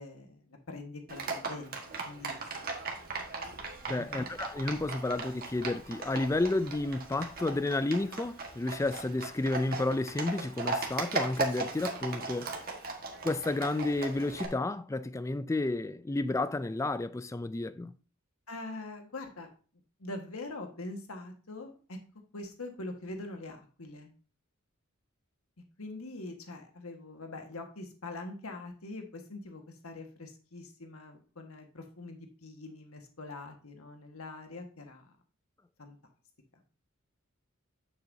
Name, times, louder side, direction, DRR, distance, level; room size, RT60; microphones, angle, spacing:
voice 1, 0.0-2.7 4.0-4.3 18.5-19.5 20.0-22.0 22.3-24.1 25.8-35.2 35.8-36.0, left 2 dB, 85° left, 1.5 m, -43 dB
Livestock farm animals working animals, 1.1-14.5, right 3 dB, 45° right, 1.5 m, -38 dB
voice 2, 3.9-12.6 13.2-17.9, left 2 dB, 15° left, 0.3 m, -31 dB
9.2 x 7.2 x 2.7 m
head